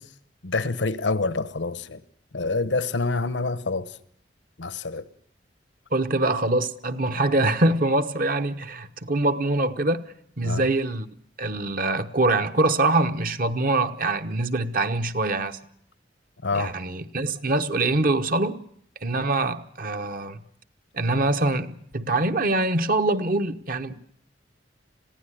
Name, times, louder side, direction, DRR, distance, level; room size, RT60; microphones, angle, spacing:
voice 1, 0.4-2.0 2.3-4.0 4.6-5.1 10.4-10.7 16.4-16.7, left 3 dB, 85° left, 1.1 m, -27 dB
voice 2, 5.9-10.1 10.4-11.1 11.4-15.6 16.5-18.6 19.0-20.4 20.9-23.9, right 2 dB, 50° right, 1.1 m, -24 dB
21.0 x 16.0 x 10.0 m
head